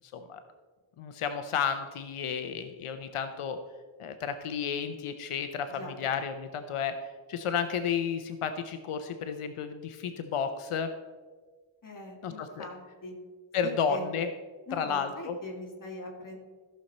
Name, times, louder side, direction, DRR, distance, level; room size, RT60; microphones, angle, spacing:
voice 1, 1.0-3.6 4.0-6.9 7.3-10.9 12.2-12.7 13.5-14.3 14.7-15.4, left 7 dB, 90° left, 8 dB, 0.8 m, -32 dB
voice 2, 11.8-13.1 13.6-14.1 14.7-16.4, left 2 dB, 40° left, 0 dB, 2.2 m, -42 dB
14.5 x 6.5 x 4.2 m, 1.5 s
wide cardioid pair, 150°, 50 cm